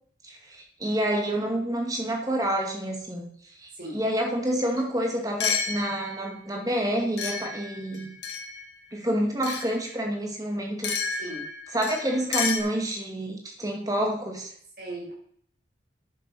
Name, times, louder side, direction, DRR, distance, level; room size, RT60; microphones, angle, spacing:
voice 1, 0.2-3.3 3.6-8.1 8.9-11.2 11.7-14.5, right 1 dB, 20° right, 1 dB, 2.2 m, -28 dB
sound 1, 4.8-4.9 5.4-6.3 7.2-8.7 9.4-9.7 10.8-12.6, left 5 dB, 80° left, 2.0 m, -31 dB
voice 2, 14.8-15.1, right 1 dB, 55° right, -4 dB, 5.7 m, -37 dB
10.0 x 7.1 x 6.1 m, 0.62 s
head